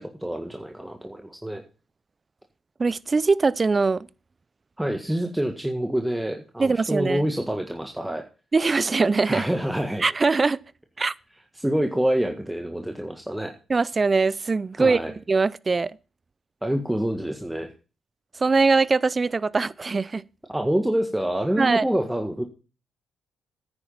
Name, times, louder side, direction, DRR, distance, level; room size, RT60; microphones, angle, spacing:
voice 1, 0.0-1.6 4.8-8.2 9.3-10.1 11.6-13.5 14.8-15.1 16.6-17.7 20.5-22.4, right 1 dB, 10° right, 1.7 m, -26 dB
voice 2, 2.8-4.1 6.6-7.2 8.5-9.5 10.0-10.6 11.0-11.1 13.7-15.0 15.3-16.0 18.4-20.2 21.6-21.8, right 4 dB, 35° right, 0.6 m, -22 dB
9.8 x 8.8 x 5.6 m
hypercardioid pair, 45°, 0 cm